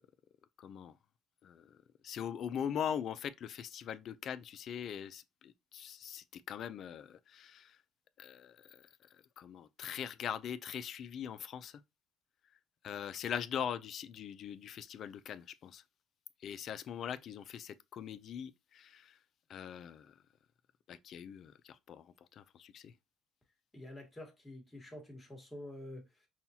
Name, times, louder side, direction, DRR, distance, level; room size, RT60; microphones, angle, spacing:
voice 1, 0.6-0.9 1.4-1.6 2.0-7.7 8.2-8.8 9.4-11.7 12.8-15.8 16.4-19.1 19.5-20.1 20.9-22.0 22.4-22.9, left 8 dB, 50° left, 0.4 m, -41 dB
voice 2, 23.7-26.3, left 1 dB, 10° left, 1.5 m, -48 dB
5.6 x 2.3 x 2.8 m
cardioid pair, 130°, 0 cm